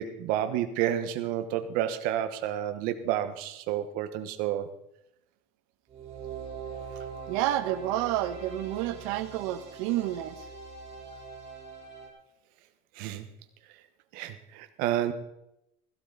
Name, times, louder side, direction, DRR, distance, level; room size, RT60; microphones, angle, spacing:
voice 1, 0.0-4.7 13.0-13.2 14.1-15.1, right 11 dB, 50° right, 10 dB, 1.2 m, -30 dB
sound 1, 5.9-12.1, right 5 dB, 35° right, 3.8 m, -42 dB
voice 2, 7.3-10.4, right 13 dB, 70° right, 10 dB, 1.2 m, -30 dB
15.5 x 12.5 x 4.0 m, 0.82 s
cardioid pair, 180°, 18 cm